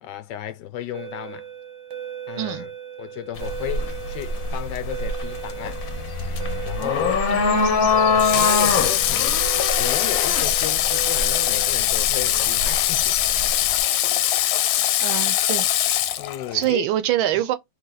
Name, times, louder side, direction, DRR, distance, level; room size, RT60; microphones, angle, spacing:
voice 1, 0.0-1.5 2.3-2.7 3.0-5.9 6.6-7.3 7.9-13.2 16.2-16.9, left 12 dB, 70° left, 1.1 m, -34 dB
sound 1, 0.9-11.7, right 9 dB, 50° right, 0.9 m, -37 dB
voice 2, 2.4-2.7 7.3-7.9 15.0-15.7 16.5-17.6, right 13 dB, 75° right, 1.3 m, -25 dB
sound 2, 3.4-13.8, left 4 dB, 50° left, 1.2 m, -24 dB
Water / Water tap faucet, 8.2-16.7, left 13 dB, 90° left, 1.5 m, -22 dB
4.1 x 3.2 x 3.9 m
omnidirectional pair, 2.4 m